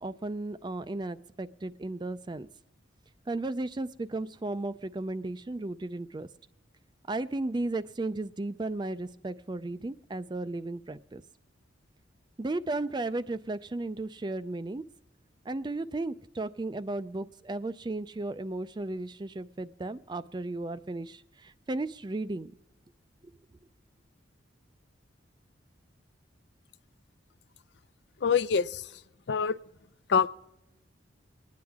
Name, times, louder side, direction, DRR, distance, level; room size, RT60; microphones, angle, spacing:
voice 1, 0.0-2.5 3.3-6.3 7.1-11.2 12.4-14.8 15.5-22.5, right 2 dB, 20° right, 14 dB, 0.4 m, -35 dB
voice 2, 28.2-28.9 29.3-29.6 30.1-30.3, left 6 dB, 60° left, 16 dB, 0.4 m, -25 dB
24.0 x 9.5 x 3.5 m, 0.92 s
head